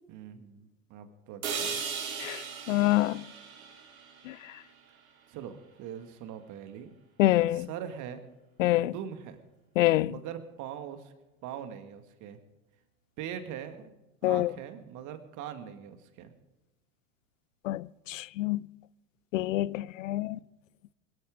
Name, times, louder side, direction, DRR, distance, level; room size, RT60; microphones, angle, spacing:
voice 1, 0.1-1.8 5.3-6.9 7.5-8.2 8.7-9.4 10.1-11.1 11.4-12.4 13.2-13.9 14.2-16.3 20.3-20.4, right 9 dB, 45° right, 2.0 m, -42 dB
sound 1, 1.4-5.4, right 6 dB, 75° right, 3.2 m, -38 dB
voice 2, 2.2-3.2 4.3-4.6 7.2-7.7 8.6-8.9 9.8-10.1 14.2-14.5 17.6-18.7 19.3-20.4, left 16 dB, 65° left, 0.5 m, -26 dB
22.5 x 13.5 x 3.7 m
figure-of-eight pair, 85°, 42 cm